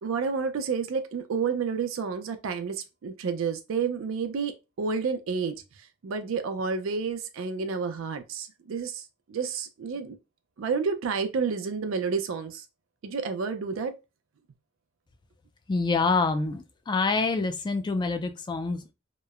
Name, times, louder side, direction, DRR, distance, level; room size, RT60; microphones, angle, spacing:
voice 1, 0.0-5.6 6.0-9.0 9.3-10.2 10.6-12.6 13.0-13.9, right 5 dB, 70° right, 0.4 m, -30 dB
voice 2, 15.7-18.9, left 3 dB, 20° left, 0.3 m, -26 dB
2.9 x 2.0 x 2.3 m
head